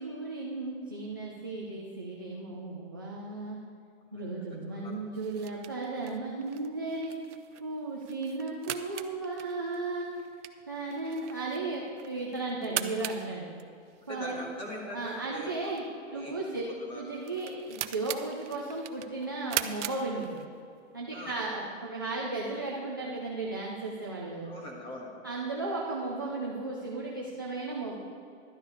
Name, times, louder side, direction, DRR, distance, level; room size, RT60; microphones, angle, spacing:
voice 1, 0.0-3.6 4.1-7.1 7.6-10.1 10.7-13.5 14.1-14.4 14.9-15.8 16.1-16.6 16.9-20.4 20.9-24.5 25.2-28.0, right 3 dB, 20° right, -4 dB, 0.3 m, -35 dB
sound 1, 5.1-20.8, right 11 dB, 65° right, 0.7 m, -41 dB
voice 2, 14.1-15.7 16.1-16.3 16.9-17.0 21.1-21.3 24.4-25.1, equal, 15° left, -1 dB, 1.6 m, -41 dB
12.0 x 9.6 x 4.9 m, 2.4 s
hypercardioid pair, 165°, 39 cm